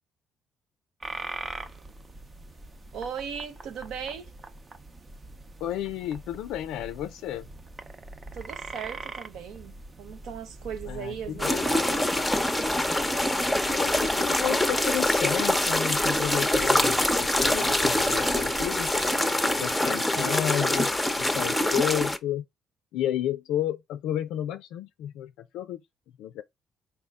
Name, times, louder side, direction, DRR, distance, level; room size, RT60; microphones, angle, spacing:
sound 1, 1.0-19.1, right 2 dB, 35° right, 0.7 m, -43 dB
voice 1, 2.9-4.3 8.3-12.0 20.1-20.4, right 7 dB, 75° right, 0.8 m, -38 dB
voice 2, 5.6-7.5 10.9-12.2 13.7-18.9 19.6-20.9 21.2-22.4 22.9-25.8 26.2-26.4, left 11 dB, 85° left, 0.3 m, -32 dB
sound 2, 11.4-22.2, left 1 dB, 5° left, 0.7 m, -25 dB
4.4 x 2.1 x 3.5 m
supercardioid pair, 70°, 0 cm